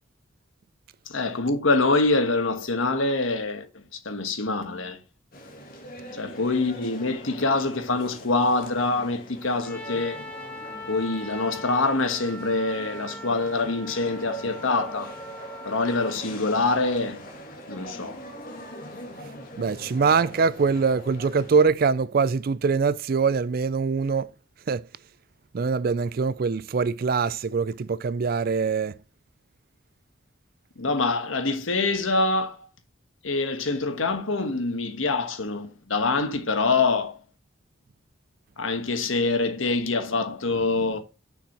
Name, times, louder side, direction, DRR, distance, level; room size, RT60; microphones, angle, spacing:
voice 1, 1.1-5.0 6.1-10.2 10.9-15.1 15.6-17.2 17.7-18.2 30.8-32.6 33.2-37.2 38.6-41.0, left 3 dB, 80° left, 1.3 m, -25 dB
sound 1, 5.3-21.7, right 1 dB, 45° left, 1.9 m, -42 dB
Trumpet, 9.6-16.2, left 1 dB, 5° left, 1.4 m, -41 dB
voice 2, 19.6-24.3 24.7-24.8 25.5-28.9, right 5 dB, 45° right, 0.4 m, -23 dB
6.9 x 6.0 x 2.9 m
head